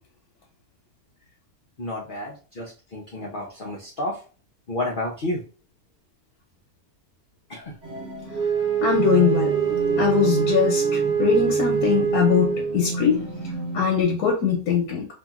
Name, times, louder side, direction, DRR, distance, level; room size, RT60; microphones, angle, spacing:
voice 1, 1.8-4.2 4.7-5.4 7.5-7.7, left 1 dB, 60° left, -3 dB, 0.5 m, -31 dB
sound 1, 7.8-14.0, right 3 dB, 50° right, 1.0 m, -32 dB
Wind instrument woodwind instrument, 8.3-12.9, right 7 dB, 85° right, 1.2 m, -24 dB
voice 2, 8.8-9.5 10.0-10.8 11.2-13.2 13.7-15.1, left 7 dB, 90° left, -1 dB, 1.2 m, -21 dB
2.8 x 2.5 x 2.4 m, 0.38 s
omnidirectional pair, 1.6 m